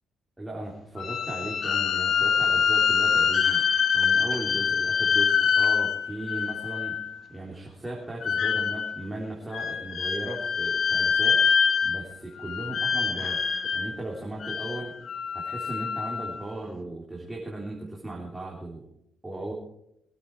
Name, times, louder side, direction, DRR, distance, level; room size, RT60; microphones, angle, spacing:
voice 1, 0.4-3.6 3.9-6.9 7.3-11.5 11.8-13.4 13.7-14.9 15.3-18.8 19.2-19.5, right 2 dB, 10° right, -3 dB, 3.4 m, -37 dB
sound 1, 1.0-7.2 8.2-9.1 9.5-12.2 12.4-13.9 14.4-16.4, left 6 dB, 55° left, 1.2 m, -25 dB
21.5 x 8.5 x 4.8 m, 0.78 s
cardioid pair, 90°, 0 cm